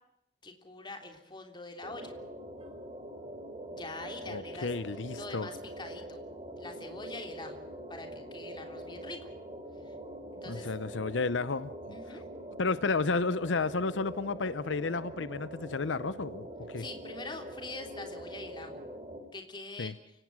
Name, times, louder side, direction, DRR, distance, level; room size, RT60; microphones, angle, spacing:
voice 1, 0.4-2.1 3.7-4.7 5.1-6.2 6.6-7.6 7.9-9.3 9.8-9.9 10.4-10.7 11.9-12.3 16.8-18.8 19.3-20.0, left 2 dB, 25° left, 4 dB, 3.3 m, -44 dB
sound 1, 1.8-19.2, right 1 dB, 30° right, 4.3 m, -44 dB
voice 2, 4.3-5.5 10.5-12.2 12.6-16.8 19.8-19.9, left 4 dB, 90° left, 15 dB, 0.8 m, -32 dB
29.5 x 17.5 x 6.3 m, 0.81 s
head